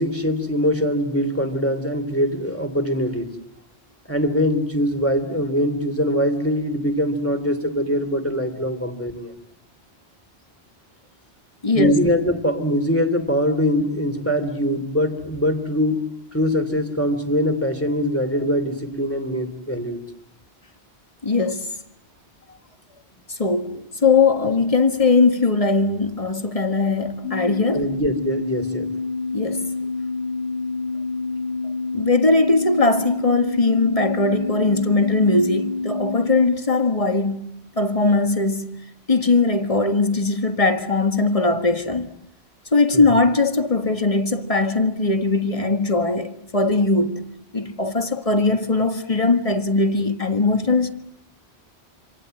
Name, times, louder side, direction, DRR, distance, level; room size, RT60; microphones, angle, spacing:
voice 1, 0.0-3.3 4.1-9.3 11.8-20.0 27.7-28.9 42.9-43.0, equal, 10° left, 3.0 m, -22 dB
voice 2, 11.6-12.0 21.2-21.7 23.3-27.9 29.3-29.7 31.9-38.8 39.1-42.1 42.7-47.3 47.5-50.9, left 3 dB, 30° left, 1.7 m, -20 dB
sound 1, 27.2-36.5, left 3 dB, 50° left, 2.2 m, -27 dB
27.5 x 26.5 x 7.8 m
omnidirectional pair, 1.1 m